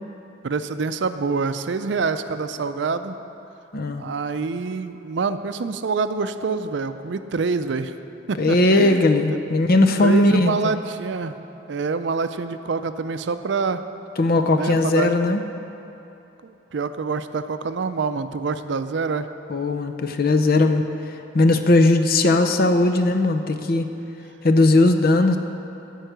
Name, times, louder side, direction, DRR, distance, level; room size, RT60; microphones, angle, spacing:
voice 1, 0.4-3.2 4.0-7.9 8.3-9.0 9.3-9.4 10.0-11.4 11.7-13.8 14.5-15.1 16.4-19.3, right 4 dB, 65° right, 10 dB, 0.5 m, -26 dB
voice 2, 3.7-4.0 8.4-10.7 14.2-15.4 19.5-20.8 21.3-23.9 24.4-25.4, left 2 dB, 50° left, 7 dB, 0.6 m, -18 dB
13.5 x 4.7 x 8.0 m, 2.9 s
head